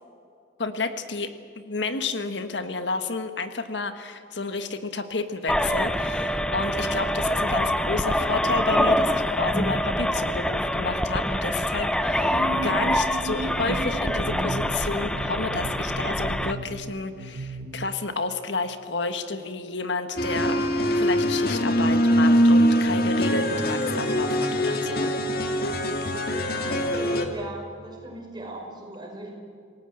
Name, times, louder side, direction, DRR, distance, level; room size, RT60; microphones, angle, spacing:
voice 1, 0.6-25.1, left 3 dB, 75° left, 8 dB, 1.5 m, -31 dB
sound 1, 5.5-16.5, equal, 5° left, 0.7 m, -25 dB
sound 2, 12.3-18.0, right 2 dB, 75° right, 1.4 m, -36 dB
sound 3, 20.2-27.3, equal, 50° left, 2.2 m, -22 dB
voice 2, 27.3-29.3, right 2 dB, 25° right, 1 dB, 5.2 m, -39 dB
28.0 x 18.0 x 7.9 m, 2.4 s
head